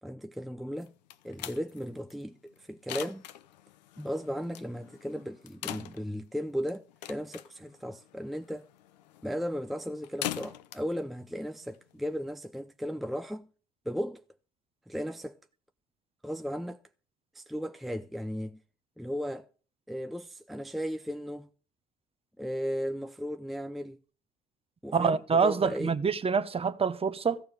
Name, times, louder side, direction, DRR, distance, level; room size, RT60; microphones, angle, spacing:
voice 1, 0.0-0.9 1.2-3.3 4.0-8.7 9.2-13.5 13.9-14.2 14.9-15.4 16.2-16.8 17.3-18.6 19.0-19.5 19.9-21.5 22.4-24.0 24.8-25.9, equal, ahead, 0.6 m, -36 dB
sound 1, 0.8-12.2, left 13 dB, 85° left, 0.9 m, -43 dB
voice 2, 24.9-27.4, right 5 dB, 25° right, 1.1 m, -26 dB
14.5 x 6.9 x 7.8 m
hypercardioid pair, 65°, 21 cm